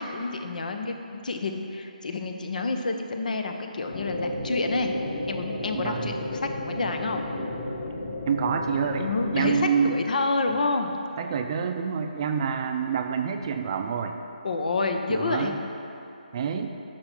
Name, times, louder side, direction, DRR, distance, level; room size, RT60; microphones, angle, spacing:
voice 1, 0.0-4.9 5.3-7.2 9.0-9.6 9.8-11.0 14.4-15.5, left 3 dB, 65° left, 5 dB, 1.0 m, -29 dB
sound 1, 3.9-9.6, left 1 dB, 35° left, 1.7 m, -33 dB
voice 2, 5.7-6.1 8.3-10.0 11.2-14.2 15.1-15.6 16.3-16.7, right 6 dB, 35° right, 6 dB, 0.6 m, -27 dB
10.5 x 6.1 x 5.4 m, 2.8 s
figure-of-eight pair, 150°, 5 cm